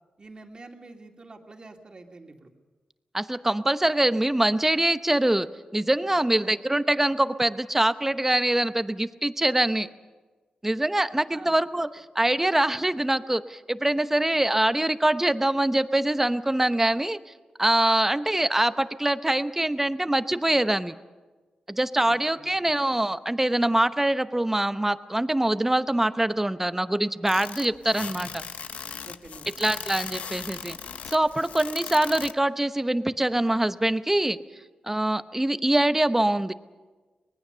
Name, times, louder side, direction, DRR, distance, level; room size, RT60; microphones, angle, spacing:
voice 1, 0.2-2.5 6.1-6.5 11.0-11.5 22.0-22.5 29.0-29.7, right 3 dB, 40° right, 3 dB, 2.4 m, -47 dB
voice 2, 3.1-5.5 5.7-9.9 10.6-17.2 17.6-20.9 21.7-28.4 29.6-30.8 31.1-34.4 34.8-36.5, right 1 dB, 15° right, 12 dB, 0.8 m, -24 dB
sound 1, 27.3-32.3, left 7 dB, 80° left, 0.7 m, -38 dB
24.5 x 19.5 x 6.8 m, 1.3 s
cardioid pair, 65°, 2 cm